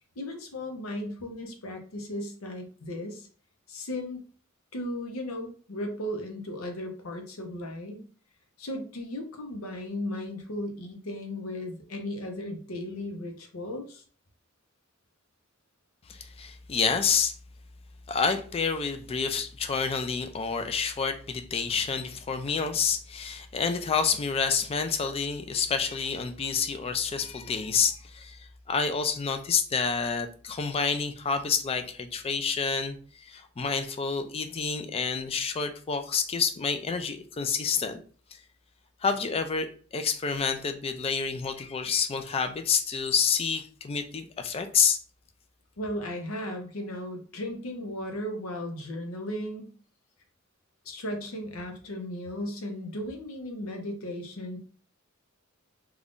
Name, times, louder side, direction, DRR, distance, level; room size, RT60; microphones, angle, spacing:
voice 1, 0.2-3.3 3.7-4.2 4.7-8.0 8.6-14.0 45.8-49.7 50.8-54.6, left 1 dB, 85° left, 4 dB, 0.7 m, -36 dB
voice 2, 16.1-17.3 18.1-38.0 38.3-38.4 39.0-45.0, left 6 dB, 30° left, 8 dB, 0.3 m, -28 dB
2.5 x 2.3 x 3.5 m, 0.42 s
head